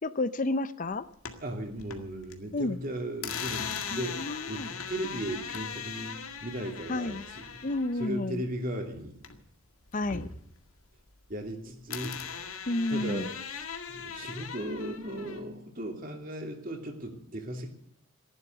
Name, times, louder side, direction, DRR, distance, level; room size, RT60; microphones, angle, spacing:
voice 1, 0.0-1.0 2.5-2.8 3.9-4.7 6.9-7.2 7.6-8.4 9.9-10.3 12.7-13.3, left 2 dB, 40° left, 13 dB, 0.6 m, -31 dB
sound 1, 0.9-2.4 2.7-9.6 9.9-11.5 11.9-15.4, left 6 dB, 85° left, 1.9 m, -40 dB
voice 2, 1.4-6.1 6.4-7.4 8.0-9.2 11.3-12.3 12.9-13.3 13.9-17.7, right 1 dB, 40° right, 4 dB, 2.7 m, -36 dB
15.0 x 11.5 x 7.9 m, 0.70 s
head